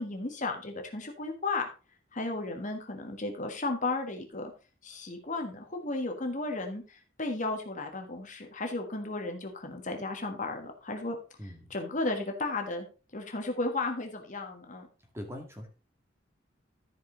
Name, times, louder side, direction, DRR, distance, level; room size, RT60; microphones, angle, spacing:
voice 1, 0.0-1.7 2.1-4.5 4.8-11.2 11.7-12.9 13.1-14.9, left 2 dB, 40° left, 4 dB, 1.5 m, -34 dB
voice 2, 11.4-11.7 15.1-15.7, equal, 15° right, 2 dB, 2.2 m, -41 dB
13.5 x 5.2 x 3.9 m, 0.34 s
head